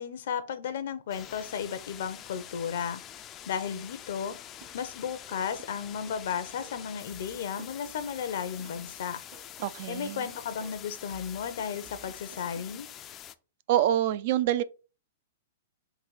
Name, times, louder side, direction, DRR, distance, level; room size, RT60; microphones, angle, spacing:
voice 1, 0.0-3.0 3.5-4.4 4.7-9.2 9.9-12.9, left 7 dB, 70° left, 0.6 m, -34 dB
sound 1, 1.1-13.3, left 11 dB, 30° left, 0.3 m, -46 dB
sound 2, 4.6-4.9 5.3-9.0 9.3-12.6, right 5 dB, 40° right, 0.7 m, -55 dB
voice 2, 9.6-10.3 13.7-14.6, right 12 dB, 55° right, 0.3 m, -26 dB
3.9 x 2.6 x 4.7 m
hypercardioid pair, 130°, 0 cm